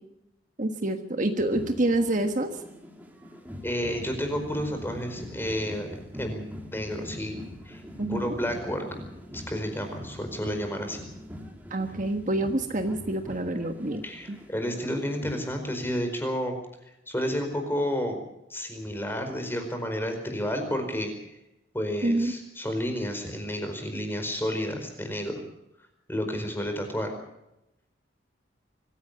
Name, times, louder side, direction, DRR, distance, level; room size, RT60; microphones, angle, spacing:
voice 1, 0.6-2.6 8.0-8.4 11.7-14.0 14.3-14.4 22.0-22.3, right 1 dB, 40° right, 7 dB, 1.5 m, -27 dB
sound 1, 1.4-15.4, equal, 10° right, 3.4 m, -43 dB
voice 2, 3.6-5.9 6.2-7.4 7.6-7.8 8.1-8.9 9.3-11.0 14.0-16.6 17.1-18.2 18.5-21.1 21.7-25.4 26.1-27.1, equal, 10° left, 5 dB, 4.8 m, -31 dB
25.0 x 16.0 x 6.9 m, 0.87 s
head